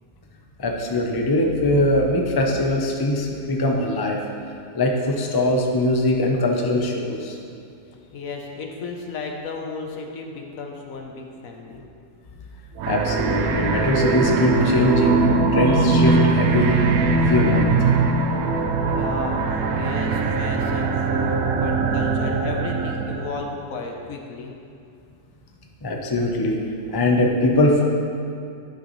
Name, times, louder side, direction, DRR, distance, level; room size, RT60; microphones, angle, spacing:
voice 1, 0.6-4.2 4.7-7.4 12.9-16.8 17.3-17.8 25.8-26.6 26.9-27.8, left 1 dB, 35° left, 1 dB, 0.3 m, -21 dB
voice 2, 8.1-11.8 18.8-24.5, left 3 dB, 65° left, 1 dB, 1.2 m, -34 dB
sound 1, 12.8-23.4, right 4 dB, 70° right, 1.0 m, -21 dB
11.0 x 6.5 x 3.1 m, 2.5 s
omnidirectional pair, 1.6 m